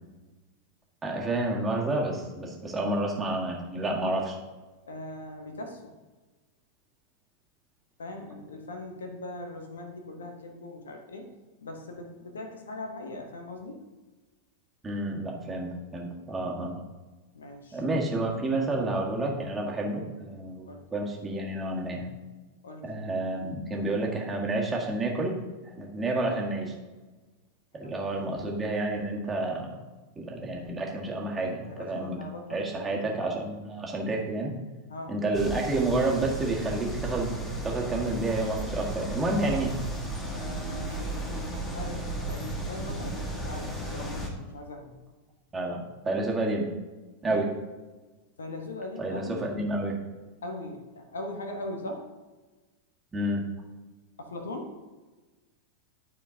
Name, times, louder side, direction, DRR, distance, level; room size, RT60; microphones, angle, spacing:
voice 1, 1.0-4.4 14.8-16.9 17.7-22.1 22.8-25.4 25.8-26.7 27.7-29.7 30.1-32.2 32.5-34.5 35.1-37.4 37.6-39.7 45.5-46.7 47.2-47.5 49.0-50.0 53.1-53.4, right 2 dB, 15° right, -1 dB, 1.5 m, -30 dB
voice 2, 4.9-5.9 8.0-11.3 11.6-13.9 17.3-17.8 20.7-20.8 22.6-22.9 27.7-28.1 31.6-32.7 34.9-35.1 40.3-44.9 47.3-47.5 48.4-49.5 50.4-52.1 54.2-54.8, left 1 dB, 70° left, 4 dB, 1.0 m, -40 dB
sound 1, 35.3-44.3, right 1 dB, 20° left, 1.4 m, -34 dB
12.0 x 4.4 x 2.8 m, 1.2 s
figure-of-eight pair, 90°, 0 cm